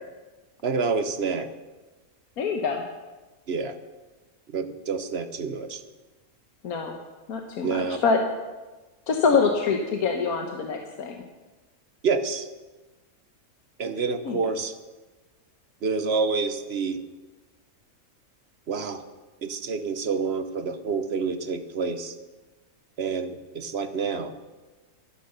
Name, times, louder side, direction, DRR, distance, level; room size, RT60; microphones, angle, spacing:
voice 1, 0.6-1.5 3.5-3.8 4.5-5.8 7.6-8.0 12.0-12.5 13.8-14.7 15.8-17.0 18.7-19.1 19.4-22.1 23.0-24.3, right 4 dB, 50° right, 10 dB, 1.0 m, -28 dB
voice 2, 2.4-2.8 6.6-6.9 7.3-8.2 9.1-11.2 14.2-14.4, left 5 dB, 80° left, 3 dB, 1.6 m, -25 dB
12.5 x 11.5 x 6.7 m, 1.2 s
omnidirectional pair, 1.5 m